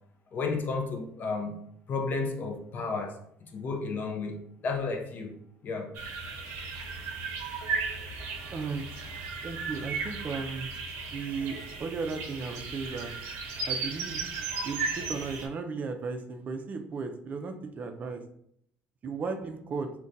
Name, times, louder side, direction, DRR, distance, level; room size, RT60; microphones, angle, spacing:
voice 1, 0.3-1.6 1.9-3.2 3.4-5.3 5.6-5.9, left 4 dB, 45° left, 3 dB, 0.5 m, -32 dB
sound 1, 5.9-15.5, right 4 dB, 85° right, 0.6 m, -35 dB
voice 2, 8.5-10.7 11.1-13.1 13.7-14.3 14.6-18.2 19.0-19.9, right 4 dB, 35° right, 5 dB, 0.4 m, -35 dB
2.4 x 2.2 x 3.9 m, 0.69 s
cardioid pair, 120°, 4 cm